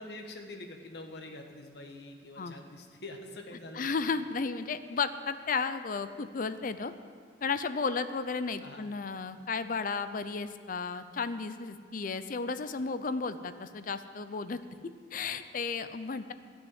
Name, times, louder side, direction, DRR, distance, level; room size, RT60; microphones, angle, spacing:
voice 1, 0.0-3.8 8.6-8.9, left 2 dB, 65° left, 4 dB, 1.3 m, -45 dB
voice 2, 3.7-6.9 7.4-14.6 15.1-16.3, left 4 dB, 45° left, 12 dB, 0.5 m, -33 dB
12.5 x 6.4 x 9.5 m, 2.1 s
head